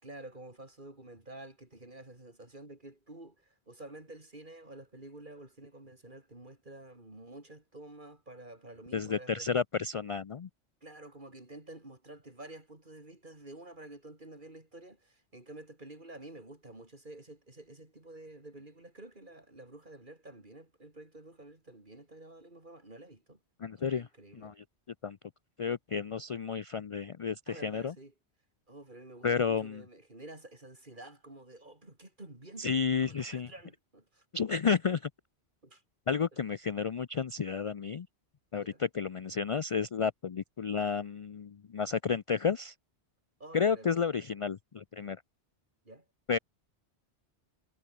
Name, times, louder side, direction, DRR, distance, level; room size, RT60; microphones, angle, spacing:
voice 1, 0.0-9.5 10.8-23.4 23.7-24.6 27.5-28.1 28.7-34.3 35.6-35.8 36.3-36.4 38.6-38.8 43.4-44.0 45.8-46.1, right 2 dB, 45° right, 4.5 m, -50 dB
voice 2, 8.9-10.5 23.6-24.1 24.3-24.5 25.0-25.2 25.6-27.9 29.2-29.8 32.6-33.5 34.3-35.1 36.1-38.1 38.5-42.7 43.5-45.2 46.3-46.4, left 6 dB, 50° left, 0.4 m, -31 dB
omnidirectional pair, 1.2 m